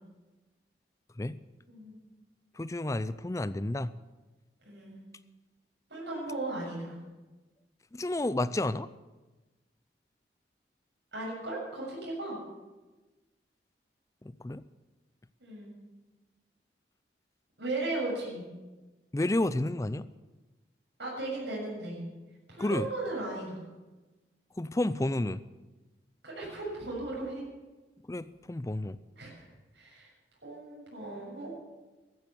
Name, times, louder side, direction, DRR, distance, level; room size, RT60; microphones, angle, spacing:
voice 1, 2.6-3.9 7.9-8.9 14.4-14.6 19.1-20.1 22.6-22.9 24.6-25.4 28.1-29.0, left 1 dB, 20° left, 16 dB, 0.4 m, -30 dB
voice 2, 4.7-5.0 5.9-7.0 11.1-12.4 15.4-15.7 17.6-18.4 21.0-22.0 22.5-23.6 26.2-27.4 29.2-29.4 29.7-30.1 30.4-31.5, right 2 dB, 85° right, -4 dB, 7.0 m, -36 dB
14.5 x 14.0 x 7.0 m, 1.2 s
head